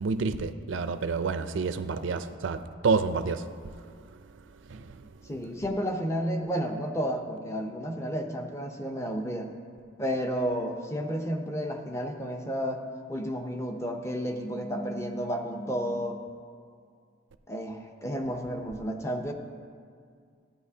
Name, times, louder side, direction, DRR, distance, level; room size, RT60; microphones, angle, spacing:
voice 1, 0.0-3.5 4.7-5.1, right 4 dB, 80° right, 0.4 m, -29 dB
voice 2, 5.3-9.5 10.0-16.2 17.5-19.3, equal, 15° left, 0.6 m, -32 dB
14.0 x 9.0 x 2.8 m
head